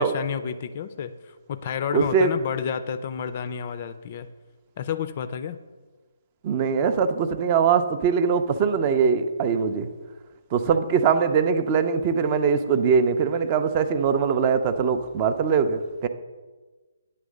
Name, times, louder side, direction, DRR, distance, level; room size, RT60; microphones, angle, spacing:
voice 1, 0.0-4.3 4.8-5.6, left 7 dB, 35° left, 11 dB, 0.4 m, -30 dB
voice 2, 1.9-2.3 6.4-9.9 10.5-16.1, right 6 dB, 25° right, 10 dB, 0.4 m, -22 dB
9.2 x 3.2 x 6.3 m, 1.3 s
figure-of-eight pair, 135°, 0 cm